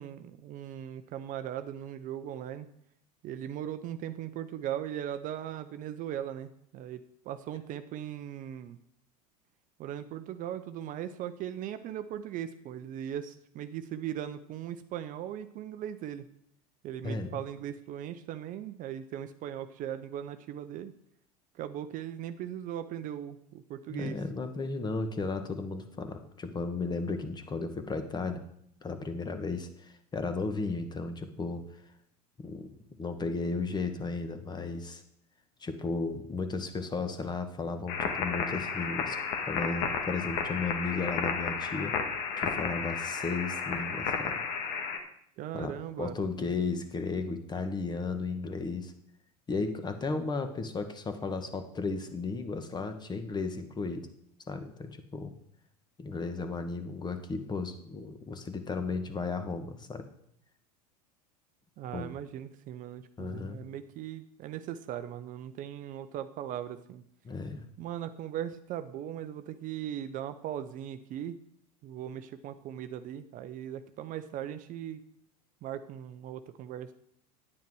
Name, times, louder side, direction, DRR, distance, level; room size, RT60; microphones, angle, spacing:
voice 1, 0.0-2.7 3.2-7.0 7.3-8.8 9.8-16.3 16.8-20.9 21.6-24.2 45.4-46.1 61.8-67.0 67.8-71.4 71.8-75.0 75.6-76.9, right 10 dB, 40° right, 11 dB, 0.6 m, -39 dB
voice 2, 17.0-17.4 23.9-28.4 28.8-31.6 32.4-32.7 33.0-35.0 35.6-42.0 42.4-44.4 45.5-48.9 49.5-54.1 54.5-55.3 56.0-60.0 61.9-62.1 63.2-63.6 67.2-67.6, left 4 dB, 20° left, 8 dB, 1.3 m, -34 dB
sound 1, 37.9-45.0, left 6 dB, 55° left, 1.8 m, -32 dB
9.7 x 9.2 x 4.7 m, 0.71 s
hypercardioid pair, 85°, 21 cm